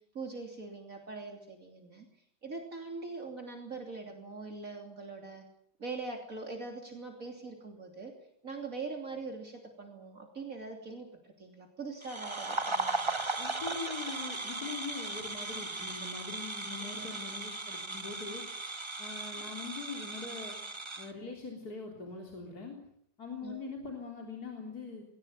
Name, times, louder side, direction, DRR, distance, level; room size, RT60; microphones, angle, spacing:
voice 1, 0.1-2.1 2.4-5.4 5.8-8.1 8.4-13.2 16.8-17.1 23.4-23.6, right 3 dB, 50° right, 2 dB, 3.5 m, -42 dB
sound 1, 12.0-21.1, right 2 dB, 20° right, 1.2 m, -37 dB
voice 2, 13.4-18.4 19.0-20.6 21.0-22.8 23.2-25.0, left 4 dB, 60° left, 1 dB, 4.1 m, -42 dB
20.0 x 18.5 x 9.1 m, 0.69 s
omnidirectional pair, 1.9 m